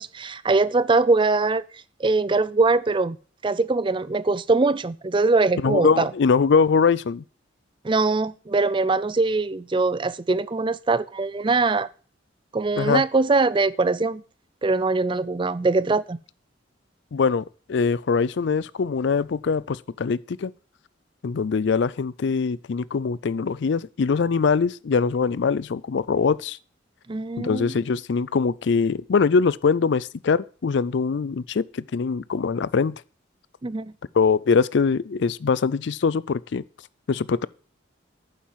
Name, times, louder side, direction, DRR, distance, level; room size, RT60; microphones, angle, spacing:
voice 1, 0.0-1.6 2.0-3.2 3.4-6.1 7.8-11.9 12.5-14.2 14.6-16.2 27.1-27.7 33.6-33.9, right 3 dB, 25° right, 0.5 m, -22 dB
voice 2, 5.6-7.2 12.8-13.0 17.1-20.5 21.2-26.6 27.4-33.0 34.1-36.6 37.1-37.5, left 5 dB, 60° left, 0.4 m, -22 dB
9.4 x 7.3 x 7.2 m
head